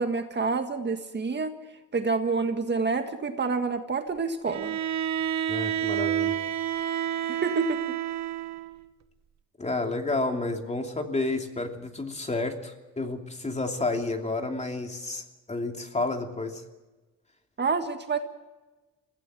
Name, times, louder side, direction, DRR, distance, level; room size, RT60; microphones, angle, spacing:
voice 1, 0.0-1.6 1.9-4.8 7.3-7.8 17.6-18.2, right 4 dB, 35° right, 6 dB, 1.7 m, -28 dB
Bowed string instrument, 4.5-8.8, right 10 dB, 65° right, 1.3 m, -29 dB
voice 2, 5.5-6.4 9.6-16.6, left 2 dB, 20° left, 4 dB, 2.9 m, -30 dB
23.5 x 16.0 x 7.6 m, 1.2 s
cardioid pair, 90°, 30 cm